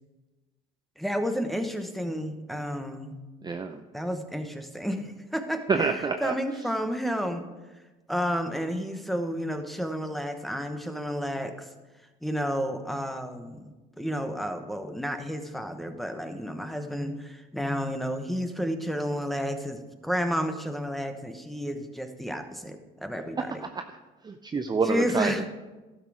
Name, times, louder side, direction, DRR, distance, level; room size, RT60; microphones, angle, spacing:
voice 1, 1.0-3.2 3.9-5.9 6.2-7.4 8.1-11.7 12.2-23.6 24.8-25.5, equal, ahead, 7 dB, 1.1 m, -31 dB
voice 2, 3.4-3.8 5.7-6.3 24.2-25.3, right 5 dB, 20° right, 7 dB, 0.5 m, -27 dB
12.0 x 6.3 x 4.9 m, 1.2 s
supercardioid pair, 80°, 21 cm